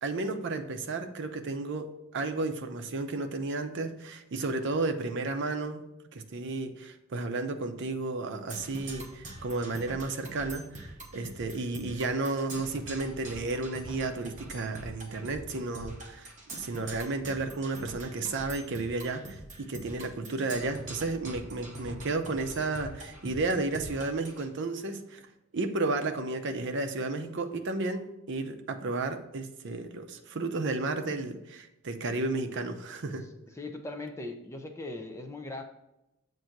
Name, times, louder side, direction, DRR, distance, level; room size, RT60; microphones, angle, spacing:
voice 1, 0.0-5.8 6.1-25.3 25.5-33.3, right 3 dB, 55° right, 6 dB, 0.6 m, -33 dB
Percussion, 8.5-24.5, right 1 dB, 35° right, 0.9 m, -44 dB
voice 2, 33.5-35.6, left 2 dB, 15° left, 4 dB, 0.4 m, -39 dB
7.6 x 2.7 x 5.8 m, 0.87 s
head